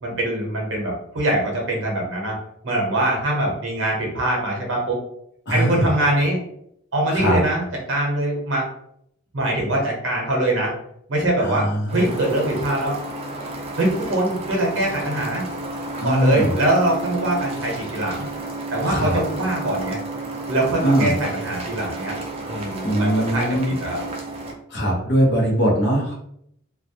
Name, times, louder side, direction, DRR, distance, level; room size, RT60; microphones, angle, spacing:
voice 1, 0.0-2.4 2.6-5.0 5.5-6.4 6.9-7.6 7.9-8.7 9.3-10.7 11.1-13.0 13.8-15.4 16.0-18.3 18.7-20.0 20.5-22.1 22.5-23.5 23.8-24.0, right 1 dB, 65° right, -1 dB, 0.8 m, -23 dB
voice 2, 5.5-5.9 7.1-7.4 11.4-12.1 16.0-16.5 18.8-19.2 20.8-21.1 22.8-23.8 24.7-26.1, right 1 dB, 55° left, -2 dB, 0.7 m, -21 dB
sound 1, 11.9-24.5, right 2 dB, 30° right, 0.4 m, -32 dB
2.2 x 2.1 x 2.7 m, 0.73 s
head